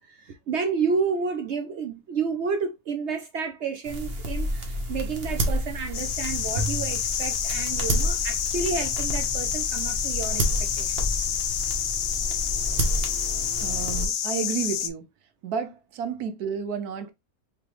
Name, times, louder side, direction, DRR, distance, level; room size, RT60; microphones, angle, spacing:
voice 1, 0.0-11.1, right 5 dB, 65° right, 0.7 m, -30 dB
sound 1, 3.8-14.1, equal, 45° right, 1.1 m, -30 dB
sound 2, 5.9-14.9, left 9 dB, 80° left, 0.5 m, -28 dB
voice 2, 13.6-15.1 15.4-17.1, right 6 dB, 80° right, 1.2 m, -31 dB
4.0 x 3.4 x 3.0 m
omnidirectional pair, 1.6 m